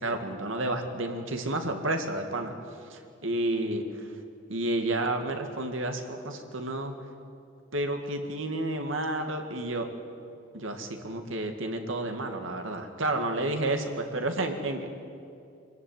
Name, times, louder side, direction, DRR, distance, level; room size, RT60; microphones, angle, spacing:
voice 1, 0.0-2.5 2.9-4.1 4.5-6.9 7.7-9.9 10.5-14.9, right 2 dB, 85° right, 5 dB, 2.1 m, -31 dB
24.0 x 14.5 x 9.4 m, 2.6 s
head